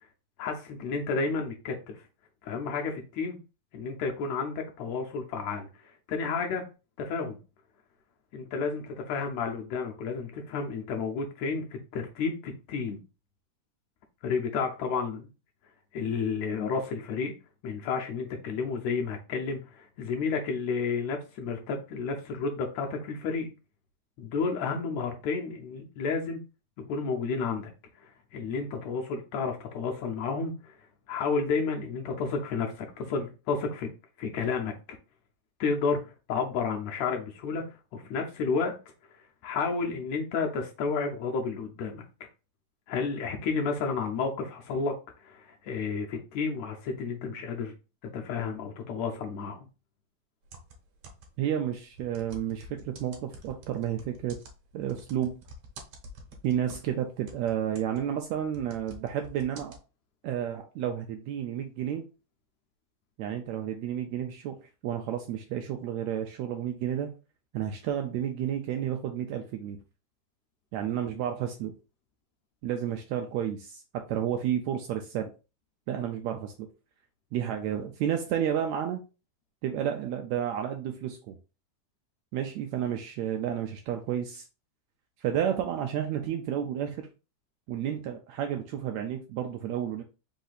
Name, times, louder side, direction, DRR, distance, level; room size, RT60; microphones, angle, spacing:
voice 1, 0.4-2.0 2.4-3.4 3.7-6.6 7.0-7.4 8.3-13.0 14.2-15.3 15.9-17.3 17.6-23.5 24.2-26.4 26.8-27.7 28.0-30.7 31.1-33.9 34.2-34.7 35.6-37.6 37.9-38.8 39.4-42.3 42.9-45.0 45.2-47.7 48.1-49.7, left 5 dB, 75° left, 1.7 m, -31 dB
sound 1, 50.4-51.5 51.9-57.0 57.3-59.8, right 1 dB, 65° right, 2.0 m, -48 dB
voice 2, 51.4-54.4 54.7-55.3 56.4-59.8 60.2-62.0 63.2-67.1 67.5-69.8 70.7-71.7 72.6-75.3 75.9-76.7 77.3-79.0 79.6-81.3 82.3-84.4 85.2-87.1 87.7-90.0, right 10 dB, 80° right, 1.6 m, -31 dB
5.0 x 2.7 x 3.9 m
omnidirectional pair, 3.6 m